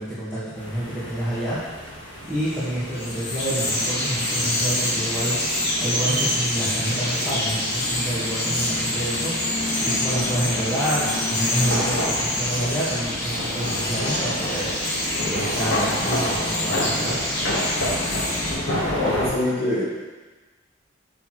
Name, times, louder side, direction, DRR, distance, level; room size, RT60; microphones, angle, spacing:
voice 1, 0.0-1.6 2.3-17.2, right 1 dB, 15° left, -11 dB, 1.7 m, -28 dB
sound 1, 0.6-19.3, left 1 dB, 90° left, 1.7 m, -32 dB
Bird vocalization bird call bird song, 2.4-18.5, left 1 dB, 60° left, 2.3 m, -26 dB
voice 2, 19.0-19.8, left 1 dB, 35° left, -8 dB, 2.3 m, -24 dB
8.3 x 6.2 x 3.2 m, 1.2 s
head